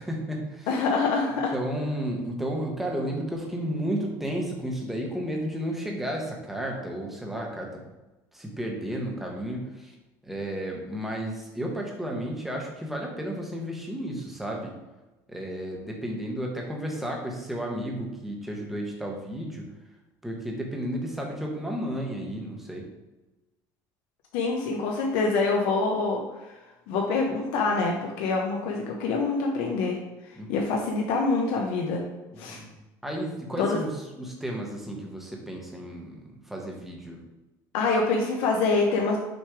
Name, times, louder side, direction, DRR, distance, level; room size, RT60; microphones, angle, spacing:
voice 1, 0.0-0.7 1.5-7.8 8.3-9.9 10.2-14.7 15.3-19.7 20.2-22.9 30.4-30.5 32.3-32.7 33.0-36.2 36.4-37.2, right 1 dB, 5° right, 0 dB, 1.1 m, -32 dB
voice 2, 0.7-1.5 24.3-26.5 26.9-30.0 30.3-32.0 32.4-32.6 33.6-33.8 37.7-39.2, left 3 dB, 80° left, 0 dB, 0.9 m, -25 dB
6.3 x 3.2 x 4.8 m, 1.1 s
cardioid pair, 155°, 8 cm